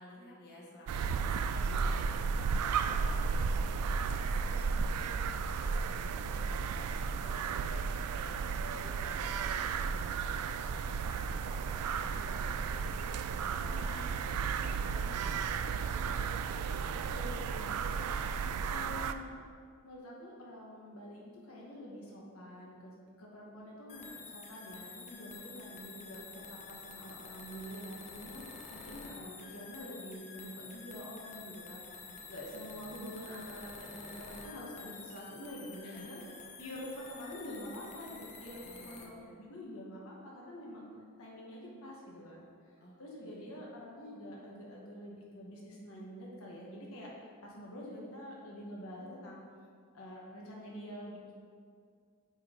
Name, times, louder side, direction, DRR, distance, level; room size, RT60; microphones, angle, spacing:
voice 1, 0.0-15.8 32.0-32.9 35.8-36.0 38.6-39.5 42.8-42.9 43.2-43.5, left 1 dB, 50° left, -5 dB, 1.4 m, -54 dB
sound 1, 0.9-19.1, right 5 dB, 80° right, 0.3 m, -34 dB
voice 2, 13.6-13.9 17.1-17.8 18.7-19.4 19.8-22.9 23.2-28.4 28.7-31.9 32.3-36.2 36.6-40.9 41.2-42.5 43.0-49.4 49.9-51.3, equal, 70° left, -4 dB, 1.4 m, -46 dB
sound 2, 23.9-39.1, left 4 dB, 30° left, 0.8 m, -49 dB
9.5 x 4.6 x 3.7 m, 2.1 s
head